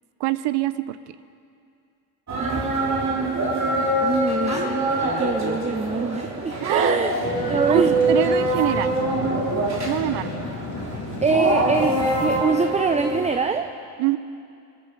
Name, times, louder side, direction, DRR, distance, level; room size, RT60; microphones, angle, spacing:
voice 1, 0.2-1.0 6.6-7.1 7.7-8.9 9.9-10.3 14.0-14.2, right 15 dB, 70° right, 15 dB, 0.8 m, -24 dB
sound 1, 2.3-13.4, right 1 dB, 40° right, 3.5 m, -24 dB
voice 2, 2.4-7.1 7.5-8.0 11.2-13.7, right 4 dB, 15° right, 7 dB, 0.6 m, -25 dB
sound 2, 7.2-12.4, left 4 dB, 45° left, 2.3 m, -33 dB
21.5 x 11.0 x 5.3 m, 2.5 s
supercardioid pair, 75°, 43 cm